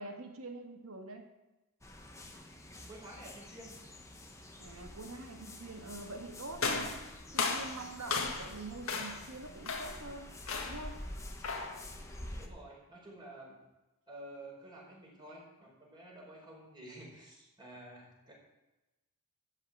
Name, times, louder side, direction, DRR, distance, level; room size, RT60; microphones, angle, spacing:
voice 1, 0.0-1.3 4.6-7.0 7.3-10.4 10.7-11.0, right 2 dB, 70° right, 4 dB, 1.8 m, -45 dB
sound 1, 1.8-12.5, left 1 dB, 15° left, 1.3 m, -48 dB
voice 2, 2.9-3.8 12.3-13.6 14.1-18.3, right 1 dB, 20° right, -3 dB, 5.0 m, -51 dB
sound 2, 6.6-8.6 8.9-9.3 9.6-10.0 10.5-10.9 11.4-11.8, left 4 dB, 70° left, 1.8 m, -35 dB
13.0 x 5.9 x 8.6 m, 1.0 s
head